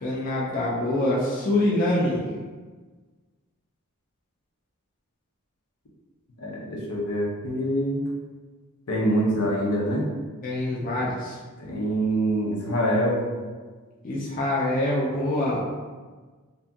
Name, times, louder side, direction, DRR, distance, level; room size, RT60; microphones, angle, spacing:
voice 1, 0.0-2.2 10.4-11.4 14.0-15.6, left 1 dB, 40° left, -5 dB, 0.4 m, -25 dB
voice 2, 6.4-8.0 8.9-10.0 11.6-13.2, right 1 dB, 80° left, -3 dB, 0.6 m, -25 dB
2.7 x 2.5 x 2.3 m, 1.4 s
head